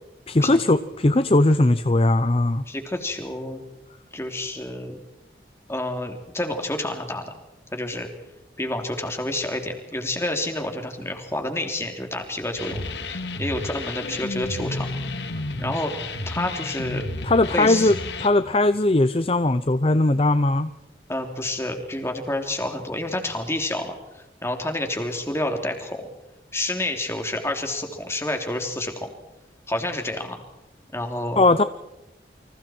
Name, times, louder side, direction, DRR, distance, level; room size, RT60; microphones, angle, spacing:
voice 1, 0.3-2.6 17.2-20.7 31.4-31.6, left 2 dB, 35° left, 12 dB, 0.7 m, -19 dB
voice 2, 2.7-3.6 4.1-5.0 5.7-7.3 7.7-8.1 8.6-14.9 15.6-15.9 16.3-17.1 17.5-17.9 21.1-26.1 26.5-29.1 29.7-30.4 30.9-31.5, left 1 dB, 15° left, 4 dB, 3.2 m, -29 dB
sound 1, 12.6-18.3, left 2 dB, 85° left, 2.0 m, -31 dB
29.5 x 26.0 x 4.5 m, 0.94 s
head